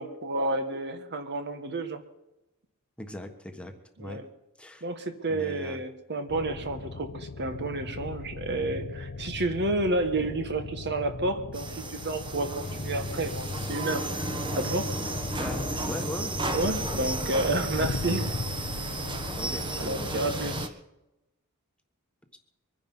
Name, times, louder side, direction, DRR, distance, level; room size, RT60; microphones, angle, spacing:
voice 1, 0.0-2.0 4.0-4.2 4.8-14.1 14.5-14.9 16.5-18.2 19.8-20.6, right 2 dB, 50° right, 8 dB, 1.4 m, -30 dB
voice 2, 3.0-3.7 4.0-4.2 4.6-4.9 5.3-5.8 15.4-16.6 17.0-17.1 17.8-17.9 19.3-20.2 22.3-22.4, left 1 dB, 5° left, 5 dB, 1.4 m, -39 dB
sound 1, 6.3-20.7, left 3 dB, 90° left, 0.8 m, -38 dB
sound 2, 11.5-20.7, right 2 dB, 20° right, 1.3 m, -34 dB
sound 3, 12.6-17.9, left 2 dB, 25° left, 0.5 m, -39 dB
23.0 x 10.5 x 5.5 m, 0.94 s
head